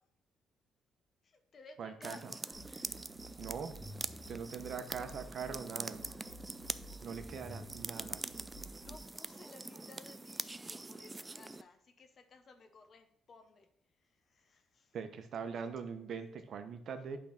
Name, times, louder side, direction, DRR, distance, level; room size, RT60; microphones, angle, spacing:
voice 1, 1.2-3.0 8.8-13.7 14.3-15.0 15.6-15.7, left 3 dB, 50° left, 6 dB, 0.9 m, -57 dB
voice 2, 1.8-2.3 3.4-3.8 4.3-6.0 7.0-8.2 14.9-17.2, right 6 dB, 65° right, 9 dB, 0.9 m, -42 dB
sound 1, 2.0-11.6, right 2 dB, 20° right, 0.4 m, -44 dB
sound 2, 2.5-5.5 5.9-9.0, equal, 5° left, 1.6 m, -52 dB
8.5 x 3.7 x 5.8 m, 0.70 s
cardioid pair, 90°, 0 cm